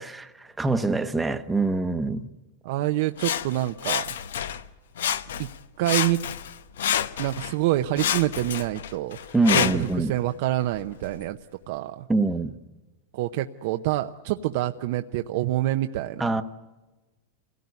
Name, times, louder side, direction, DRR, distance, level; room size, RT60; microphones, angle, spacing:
voice 1, 0.0-2.3 9.3-10.1 12.1-12.5 16.2-16.4, right 3 dB, 5° right, 1.0 m, -24 dB
voice 2, 2.6-4.1 5.4-5.5 5.8-6.2 7.2-9.2 9.5-11.4 11.7-12.0 13.1-16.4, right 15 dB, 60° right, 0.8 m, -26 dB
Sawing, 3.2-4.7 5.0-5.6 5.8-7.5 8.0-10.0 10.6-10.7, left 9 dB, 90° left, 1.1 m, -28 dB
26.5 x 17.5 x 9.6 m
supercardioid pair, 145°, 0 cm